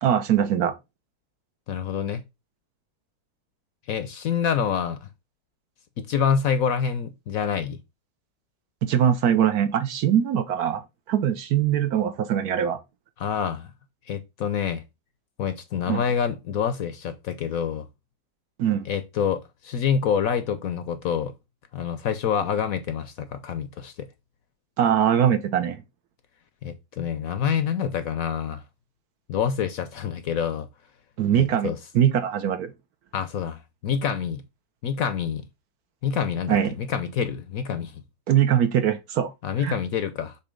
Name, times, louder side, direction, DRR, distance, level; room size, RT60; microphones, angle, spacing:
voice 1, 0.0-0.7 8.8-10.8 11.1-12.8 15.9-16.0 18.6-18.9 24.8-25.8 31.2-32.7 36.5-36.8 38.3-39.3 39.6-39.7, right 9 dB, 65° right, 1.1 m, -22 dB
voice 2, 1.7-2.2 3.9-5.1 6.0-7.8 13.2-13.7 14.1-14.8 15.4-17.9 18.8-21.3 21.7-24.1 26.6-28.6 29.3-30.7 31.3-31.8 33.1-34.4 34.8-35.4 36.0-38.0 39.4-40.4, left 7 dB, 65° left, 0.9 m, -27 dB
6.8 x 3.0 x 5.1 m
omnidirectional pair, 1.9 m